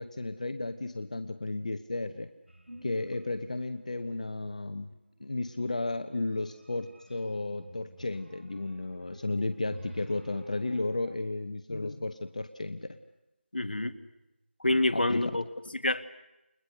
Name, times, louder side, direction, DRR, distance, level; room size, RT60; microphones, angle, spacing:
voice 1, 0.0-2.3 2.8-4.9 5.2-13.0 14.9-15.4, left 2 dB, 40° left, 9 dB, 1.1 m, -33 dB
sound 1, 2.5-3.5 3.8-4.4 5.2-11.2, right 1 dB, 80° right, 4.2 m, -50 dB
voice 2, 11.7-12.1 13.5-14.0 14.6-15.4 15.7-16.0, left 2 dB, 60° left, 8 dB, 2.0 m, -28 dB
30.0 x 28.5 x 6.7 m, 0.94 s
figure-of-eight pair, 170°, 6 cm